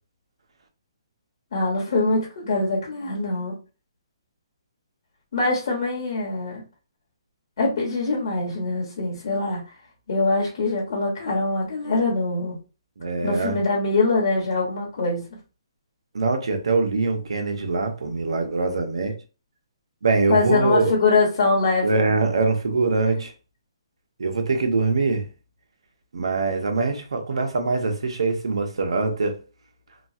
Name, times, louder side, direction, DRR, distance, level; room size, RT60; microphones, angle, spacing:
voice 1, 1.5-3.5 5.3-6.6 7.6-9.6 10.1-12.6 13.2-15.3 20.3-22.0, left 3 dB, 55° left, 1.1 m, -23 dB
voice 2, 13.0-13.5 16.1-19.1 20.0-20.9 21.8-23.3 24.2-25.3 26.1-29.4, right 3 dB, 80° right, 0.8 m, -23 dB
3.0 x 2.3 x 2.6 m
hypercardioid pair, 160°, 3 cm